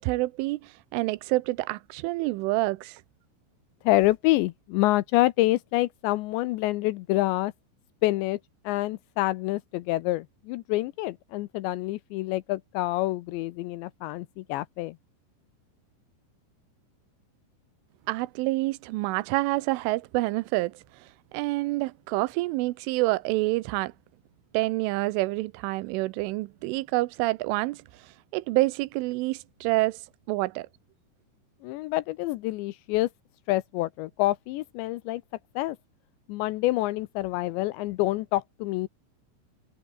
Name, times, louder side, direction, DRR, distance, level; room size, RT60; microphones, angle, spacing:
voice 1, 0.0-3.0 18.1-20.7 21.3-23.9 24.5-27.8 28.3-30.0 30.3-30.7, right 20 dB, 85° right, 3.2 m, -27 dB
voice 2, 3.8-7.5 8.0-8.4 8.7-15.0 31.6-33.1 33.5-35.2 35.6-35.8 36.3-38.9, left 18 dB, 80° left, 2.7 m, -27 dB
omnidirectional pair, 5.6 m